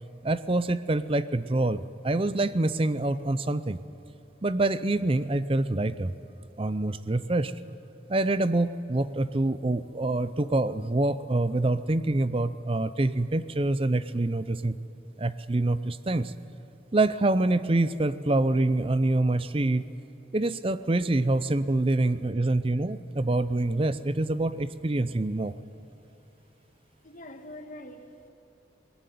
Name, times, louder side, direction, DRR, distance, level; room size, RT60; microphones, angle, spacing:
voice 1, 0.2-3.8 4.4-6.1 6.6-7.5 8.1-14.8 15.2-16.3 16.9-19.8 20.3-25.5, right 2 dB, 30° right, 0.6 m, -26 dB
voice 2, 27.0-28.3, left 1 dB, 45° left, 1.6 m, -44 dB
20.0 x 19.0 x 9.3 m
head